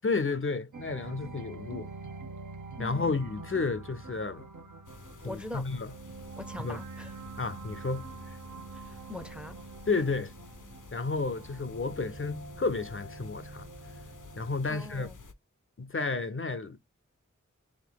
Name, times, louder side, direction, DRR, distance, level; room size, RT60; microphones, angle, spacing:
voice 1, 0.0-1.9 2.8-4.5 5.2-5.9 6.6-6.8 7.4-8.4 9.9-10.3 10.9-13.7 14.4-15.1 15.8-16.8, left 3 dB, 45° left, 0.5 m, -32 dB
sound 1, 0.7-14.6, right 3 dB, 75° right, 0.9 m, -45 dB
voice 2, 2.8-3.3 5.2-5.6 6.4-7.1 8.8-9.6 14.7-15.2, left 1 dB, 5° right, 0.6 m, -42 dB
sound 2, 4.8-15.3, left 4 dB, 80° left, 0.7 m, -51 dB
3.5 x 3.0 x 3.7 m
wide cardioid pair, 40°, 30 cm